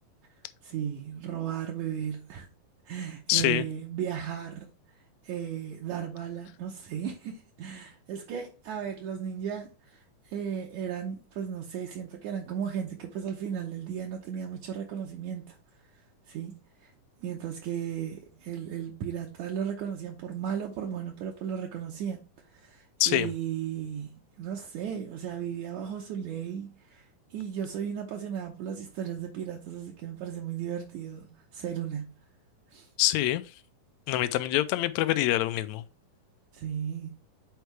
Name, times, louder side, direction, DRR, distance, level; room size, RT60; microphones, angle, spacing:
voice 1, 0.6-2.5 2.9-4.7 5.2-15.6 16.3-16.9 17.2-22.2 22.5-32.1 32.7-32.9 36.5-37.2, right 8 dB, 70° right, 2.2 m, -35 dB
voice 2, 3.3-3.6 23.0-23.3 33.0-33.4 34.1-35.8, left 15 dB, 85° left, 1.6 m, -25 dB
8.2 x 4.6 x 3.2 m
omnidirectional pair, 3.7 m